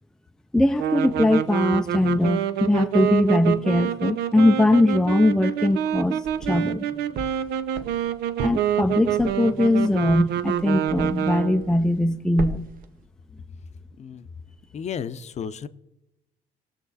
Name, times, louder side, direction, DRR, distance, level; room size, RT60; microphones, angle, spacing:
voice 1, 0.5-6.9 8.4-12.7, left 1 dB, 5° left, 0.5 m, -21 dB
sound 1, 0.8-11.7, right 10 dB, 80° right, 0.7 m, -26 dB
sound 2, 5.7-6.7 7.2-11.3 11.6-12.1 12.4-12.9, right 3 dB, 55° right, 1.2 m, -36 dB
voice 2, 14.0-14.3 14.7-15.7, left 7 dB, 40° left, 0.7 m, -33 dB
19.5 x 7.2 x 4.2 m
cardioid pair, 110°, 17 cm